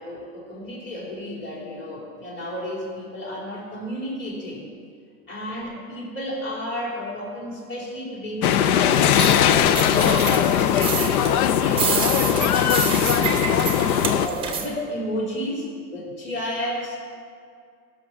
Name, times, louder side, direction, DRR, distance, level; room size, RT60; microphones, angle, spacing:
voice 1, 0.0-4.7 5.3-13.5 14.1-17.0, equal, 25° left, -4 dB, 3.6 m, -32 dB
sound 1, 8.4-14.3, left 10 dB, 65° left, 0.7 m, -20 dB
sound 2, 8.9-14.7, right 6 dB, 10° right, 0.9 m, -28 dB
17.0 x 6.2 x 6.2 m, 2.2 s
supercardioid pair, 145°, 48 cm